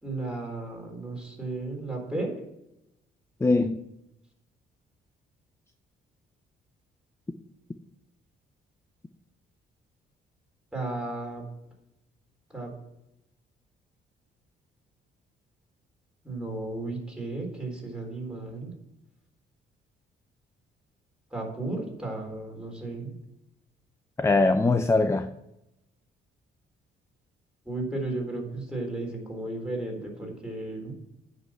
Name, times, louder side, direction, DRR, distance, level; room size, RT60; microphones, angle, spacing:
voice 1, 0.0-2.3 10.7-11.4 12.5-12.7 16.2-18.7 21.3-23.1 27.7-30.9, right 2 dB, 5° right, 3.8 m, -34 dB
voice 2, 3.4-3.8 24.2-25.3, left 3 dB, 15° left, 0.5 m, -22 dB
9.4 x 5.6 x 7.3 m
cardioid pair, 90°, 20 cm